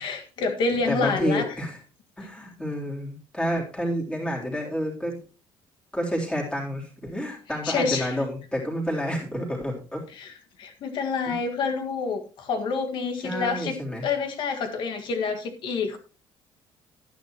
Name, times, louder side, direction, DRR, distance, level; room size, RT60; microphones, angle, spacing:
voice 1, 0.0-1.5 7.6-8.2 10.1-16.0, left 4 dB, 55° left, 1.9 m, -28 dB
voice 2, 0.9-1.8 2.2-5.2 5.9-10.0 11.3-11.4 13.2-14.0, equal, 10° left, 3.5 m, -29 dB
12.0 x 10.0 x 3.0 m
cardioid pair, 150°, 9 cm